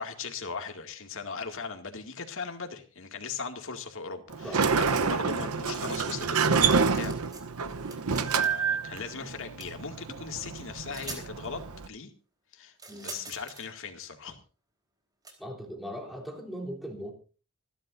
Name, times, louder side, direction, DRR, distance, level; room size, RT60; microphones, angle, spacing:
voice 1, 0.0-7.2 7.6-7.8 8.1-12.1 12.5-14.4, left 5 dB, 65° left, 5 dB, 2.2 m, -39 dB
Sliding door, 4.3-11.9, right 5 dB, 90° right, 0.9 m, -28 dB
sound 1, 6.6-7.4 7.7-8.6 9.6-9.7 10.6-10.7 10.9-11.3 12.8-13.7 15.2-15.3, right 3 dB, 20° right, 3.8 m, -44 dB
voice 2, 15.4-17.1, equal, ahead, 0 dB, 3.3 m, -39 dB
26.5 x 11.5 x 2.6 m, 0.35 s
head